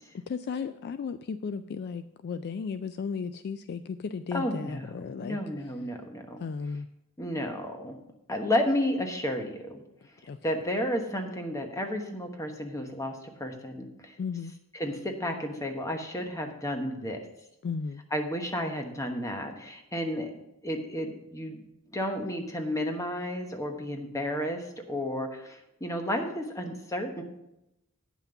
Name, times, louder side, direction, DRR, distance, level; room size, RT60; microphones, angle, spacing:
voice 1, 0.1-5.7 6.4-6.9 10.3-10.4 14.2-14.5 17.6-18.0, left 5 dB, 45° left, 12 dB, 0.3 m, -35 dB
voice 2, 4.3-6.4 7.2-8.0 8.3-9.8 10.4-14.1 14.7-17.2 18.1-20.3 20.6-27.2, left 1 dB, 15° left, 4 dB, 1.1 m, -32 dB
9.2 x 5.8 x 6.8 m, 0.86 s
head